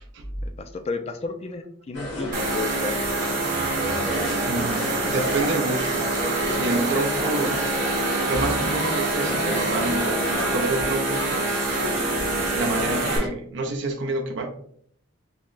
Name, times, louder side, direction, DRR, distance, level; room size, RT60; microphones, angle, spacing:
voice 1, 0.4-3.0, left 3 dB, 30° left, 7 dB, 0.4 m, -32 dB
sound 1, 1.9-13.3, equal, 90° left, 1.4 m, -31 dB
sound 2, 2.3-13.2, right 2 dB, 45° right, 1.0 m, -26 dB
voice 2, 4.4-6.1 6.5-7.6 8.3-11.6 12.3-14.5, right 2 dB, 65° right, 2 dB, 0.5 m, -28 dB
5.5 x 2.1 x 2.4 m, 0.65 s
head